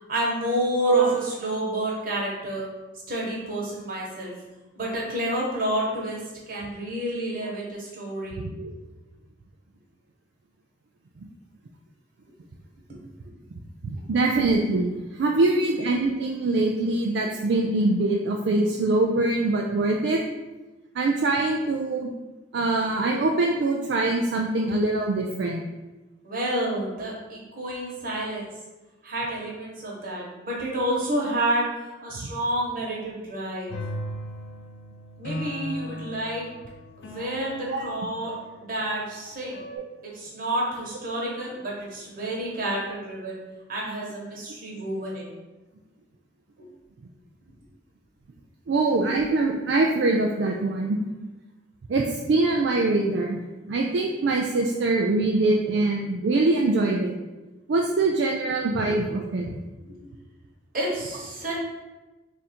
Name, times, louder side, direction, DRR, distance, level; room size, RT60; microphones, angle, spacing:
voice 1, 0.0-2.7 3.1-4.3 4.7-6.2 6.5-8.4 12.9-13.0 26.2-28.5 29.0-33.8 35.2-36.5 37.0-39.6 40.0-43.4 43.7-45.3 46.6-46.7 58.8-59.0 59.8-60.1 60.7-61.5, right 1 dB, 50° right, -4 dB, 1.2 m, -29 dB
voice 2, 8.4-8.7 13.8-14.9 15.2-20.2 21.0-22.1 22.5-25.6 37.7-37.8 48.7-51.0 51.9-53.4 53.7-57.1 57.7-59.5, right 2 dB, 75° right, 0 dB, 0.4 m, -23 dB
sound 1, 33.7-38.8 39.5-39.8, left 1 dB, 75° left, 0.6 m, -37 dB
3.6 x 2.6 x 4.2 m, 1.1 s
head